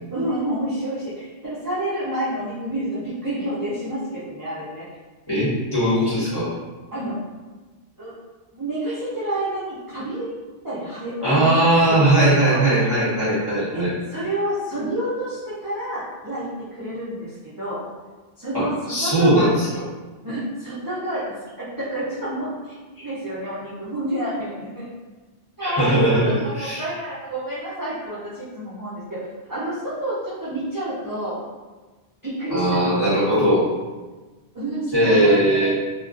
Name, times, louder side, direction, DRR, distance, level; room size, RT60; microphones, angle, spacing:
voice 1, 0.1-4.8 6.9-7.2 8.0-8.1 8.5-10.3 10.6-12.7 13.7-13.8 14.1-17.8 18.4-19.5 20.2-21.2 21.6-24.9 25.6-31.4 32.2-33.5 34.5-35.7, right 1 dB, 25° right, -12 dB, 0.5 m, -29 dB
voice 2, 5.3-6.5 11.2-13.9 18.5-19.7 25.6-26.8 32.5-33.6 34.9-35.7, right 1 dB, 25° left, -12 dB, 1.1 m, -19 dB
2.3 x 2.1 x 2.5 m, 1.3 s
omnidirectional pair, 1.1 m